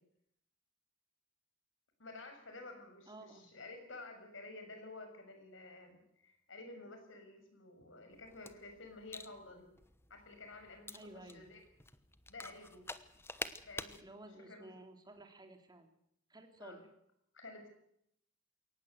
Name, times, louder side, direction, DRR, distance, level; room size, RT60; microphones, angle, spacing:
voice 1, 2.0-9.7 10.1-11.6 12.3-12.8 13.6-14.7 16.6-16.8 17.3-17.7, left 2 dB, 70° left, 5 dB, 6.5 m, -52 dB
voice 2, 3.1-3.5 10.9-11.5 12.4-12.5 14.0-15.9 16.3-16.8, right 2 dB, 20° right, 5 dB, 3.1 m, -54 dB
sound 1, 8.1-14.0, left 3 dB, 10° left, 1.1 m, -48 dB
22.5 x 18.5 x 8.1 m, 0.74 s
head